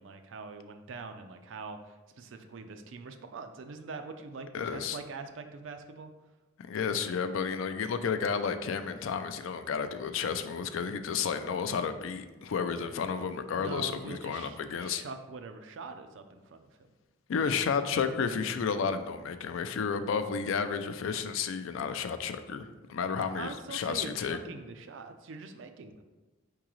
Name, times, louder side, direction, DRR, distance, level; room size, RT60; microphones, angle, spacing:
voice 1, 0.0-6.1 13.5-16.7 23.2-26.0, right 4 dB, 65° right, 8 dB, 0.4 m, -43 dB
voice 2, 4.5-5.0 6.7-15.0 17.3-24.4, left 6 dB, 70° left, 10 dB, 0.3 m, -32 dB
4.7 x 3.7 x 3.0 m, 1.1 s
head